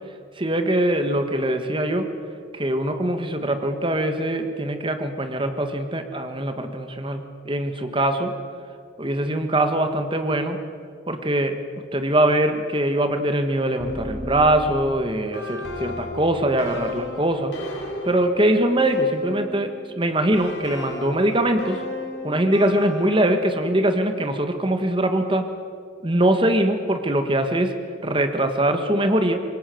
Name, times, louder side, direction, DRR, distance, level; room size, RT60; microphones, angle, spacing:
voice 1, 0.4-2.1 2.5-8.3 9.0-10.6 11.1-11.6 11.9-17.5 18.0-21.8 22.2-25.5 26.0-27.7 28.0-29.4, right 1 dB, 25° right, 7 dB, 1.5 m, -22 dB
sound 1, 13.8-19.7 20.3-23.5, left 2 dB, 60° left, 5.1 m, -34 dB
25.5 x 21.5 x 7.8 m, 2.3 s
head